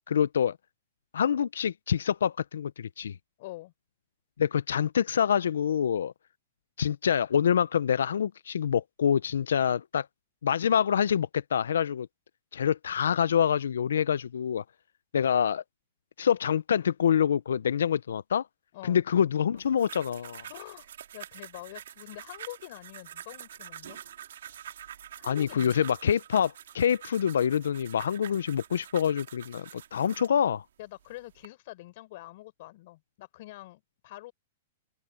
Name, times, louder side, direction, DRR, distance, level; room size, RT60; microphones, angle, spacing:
voice 1, 0.1-0.6 1.1-3.2 4.4-6.1 6.8-10.1 10.4-12.1 12.5-14.6 15.1-15.6 16.2-18.5 18.8-20.5 25.2-30.6, left 8 dB, 90° left, 0.4 m, -26 dB
voice 2, 3.4-3.7 18.7-19.0 20.5-20.9 21.1-24.0 25.1-25.9 30.8-34.3, left 18 dB, 55° left, 4.1 m, -45 dB
sound 1, 19.6-30.4 31.0-31.5, right 10 dB, 80° right, 2.5 m, -46 dB
open air
hypercardioid pair, 140°, 0 cm